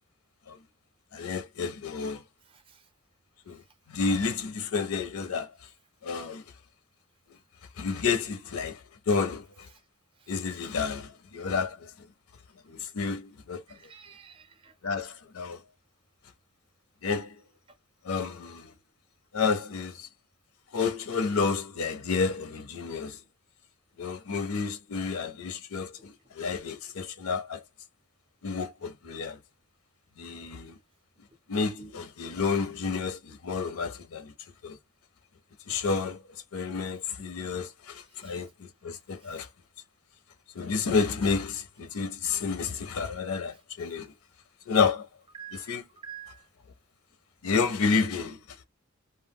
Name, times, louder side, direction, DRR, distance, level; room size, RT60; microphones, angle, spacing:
voice 1, 1.1-2.2 3.5-3.6 3.9-5.5 6.0-6.4 7.8-8.8 9.1-9.7 10.3-11.9 12.7-13.6 14.8-15.6 17.0-17.3 18.1-18.7 19.3-20.1 20.7-23.2 24.0-27.6 28.4-29.4 30.2-30.7 31.5-34.3 34.6-34.8 35.7-36.2 36.5-39.5 40.6-44.1 44.7-45.1 45.5-45.8 47.4-48.4, left 5 dB, 85° left, 0.5 m, -30 dB
voice 2, 13.7-14.7 45.3-45.7 46.0-46.4, right 9 dB, 25° right, 0.5 m, -46 dB
2.3 x 2.0 x 3.5 m
head